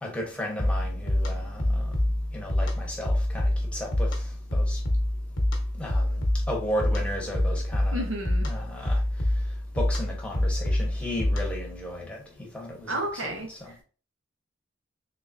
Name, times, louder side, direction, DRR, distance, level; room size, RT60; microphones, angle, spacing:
voice 1, 0.0-1.9 2.3-4.2 4.5-4.8 5.8-6.2 6.5-8.1 8.4-9.0 9.7-12.2 12.5-13.7, left 1 dB, 5° left, 1.0 m, -35 dB
sound 1, 0.6-11.7, left 1 dB, 70° left, 1.0 m, -27 dB
voice 2, 7.9-8.5 8.8-8.9 12.8-13.7, right 1 dB, 85° right, 1.3 m, -32 dB
3.7 x 3.3 x 2.6 m
head